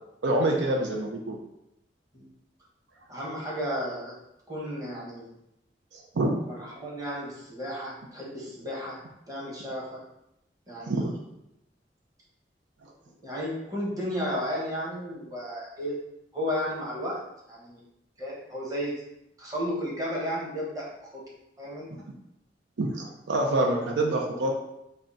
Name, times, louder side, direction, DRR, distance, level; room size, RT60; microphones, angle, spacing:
voice 1, 0.2-1.4 6.2-6.4 10.9-11.1 22.8-24.5, right 1 dB, 80° right, 1 dB, 0.5 m, -26 dB
voice 2, 3.1-4.2 4.5-5.3 6.5-9.0 9.3-10.0 10.7-11.1 13.2-16.0 16.3-17.8 18.2-19.0 19.4-21.3 21.6-21.9, equal, 20° right, -5 dB, 1.0 m, -33 dB
3.5 x 2.2 x 3.9 m, 0.83 s
head